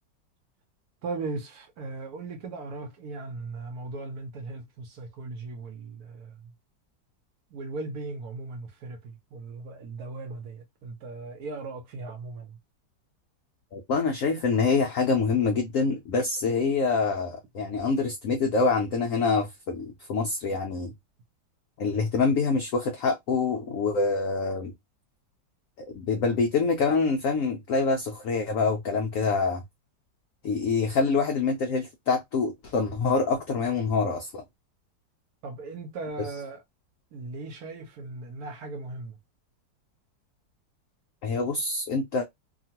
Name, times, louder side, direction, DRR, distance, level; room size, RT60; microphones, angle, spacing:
voice 1, 1.0-6.5 7.5-12.6 35.4-36.6 37.1-39.2, right 3 dB, 65° right, 1.0 m, -38 dB
voice 2, 13.7-20.9 21.8-24.7 25.9-29.6 30.4-34.4 41.2-42.2, left 4 dB, 80° left, 0.7 m, -26 dB
2.9 x 2.4 x 2.8 m
omnidirectional pair, 2.0 m